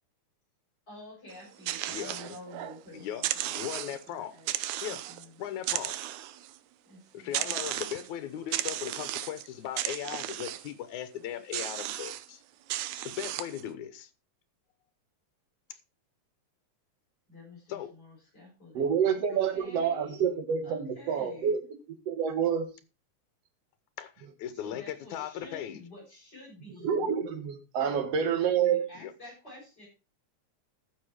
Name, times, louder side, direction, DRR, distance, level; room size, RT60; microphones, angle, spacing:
voice 1, 0.9-4.5 4.9-5.3 6.9-7.6 8.5-8.6 17.3-21.5 24.6-27.1 27.8-29.9, left 2 dB, 30° left, 7.6 m, -50 dB
sound 1, 1.3-2.8 3.1-4.1 4.5-5.3 5.6-6.6 7.3-8.1 8.5-9.5 9.8-10.7 11.5-12.3 12.7-13.6, right 13 dB, 80° right, 2.0 m, -34 dB
voice 2, 1.9-2.4 2.9-3.3 3.5-4.3 4.8-5.0 5.4-5.9 7.1-12.4 13.0-14.1 17.7-17.9 24.0-25.8 29.0-29.1, left 10 dB, 85° left, 2.4 m, -38 dB
voice 3, 18.7-21.6 22.1-22.7 26.8-28.9, right 7 dB, 60° right, 2.5 m, -28 dB
14.0 x 6.5 x 4.8 m
omnidirectional pair, 3.3 m